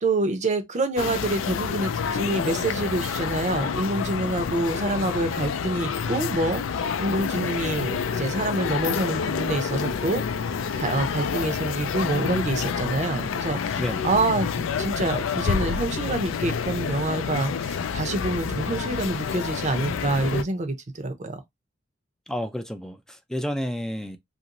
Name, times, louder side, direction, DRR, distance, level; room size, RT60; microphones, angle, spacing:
voice 1, 0.0-10.2 10.7-21.4, right 2 dB, 40° right, 0.6 m, -27 dB
sound 1, 1.0-20.4, left 6 dB, 90° left, 0.4 m, -28 dB
voice 2, 22.3-24.2, equal, 5° left, 0.3 m, -30 dB
2.9 x 2.6 x 2.9 m
head